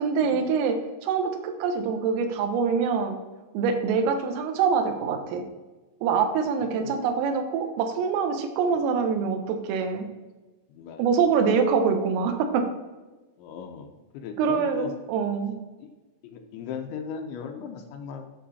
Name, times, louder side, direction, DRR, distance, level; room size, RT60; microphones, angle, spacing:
voice 1, 0.0-3.2 3.6-5.4 6.0-10.1 11.0-12.7 14.4-15.6, right 5 dB, 90° right, 6 dB, 3.8 m, -25 dB
voice 2, 6.7-7.0 10.7-11.0 13.4-13.9 14.1-14.9 15.8-15.9 16.2-18.3, left 6 dB, 75° left, 4 dB, 2.9 m, -37 dB
13.0 x 6.7 x 4.2 m, 1.2 s
omnidirectional pair, 5.7 m